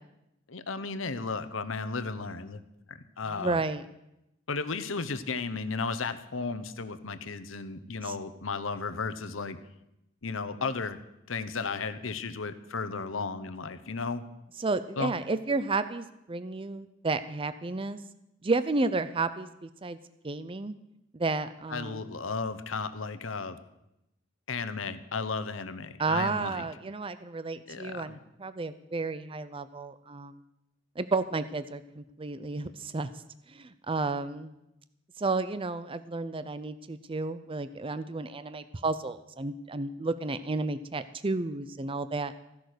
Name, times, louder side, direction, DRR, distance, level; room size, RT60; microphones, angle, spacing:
voice 1, 0.5-2.6 2.9-3.6 4.5-9.6 10.2-11.0 11.3-14.2 15.0-15.1 21.7-23.6 24.5-26.6 27.7-28.2, left 4 dB, 85° left, 12 dB, 1.0 m, -34 dB
voice 2, 3.3-3.8 8.0-8.1 14.6-18.0 18.4-20.0 20.2-20.8 21.1-22.0 26.0-30.4 31.0-33.1 33.5-34.5 35.2-42.3, right 3 dB, 25° right, 12 dB, 0.6 m, -32 dB
15.0 x 10.5 x 6.7 m, 0.87 s
head